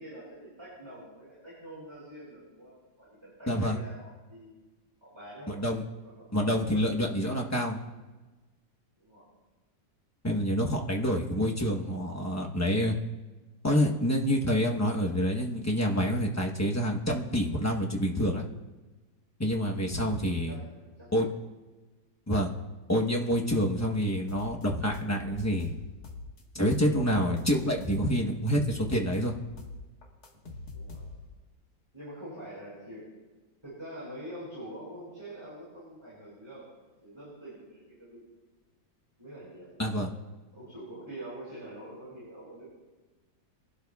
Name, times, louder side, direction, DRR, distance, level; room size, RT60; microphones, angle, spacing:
voice 1, 0.0-4.6 5.0-5.6 6.0-7.3 9.0-9.3 19.7-19.8 20.5-21.3 30.7-31.1 31.9-33.1 33.6-38.3 39.2-39.7 40.5-42.7, right 1 dB, 15° right, -9 dB, 5.2 m, -45 dB
voice 2, 3.5-3.8 5.5-5.8 6.3-7.8 10.2-13.0 13.6-18.4 19.4-20.5 21.1-21.3 22.3-22.5 22.9-25.7 26.5-29.3 39.8-40.1, equal, 20° left, 0 dB, 0.5 m, -27 dB
sound 1, 24.3-26.4 26.7-28.2 28.5-31.4, left 3 dB, 55° left, 2.0 m, -44 dB
22.5 x 12.0 x 2.3 m, 1.2 s
omnidirectional pair, 2.0 m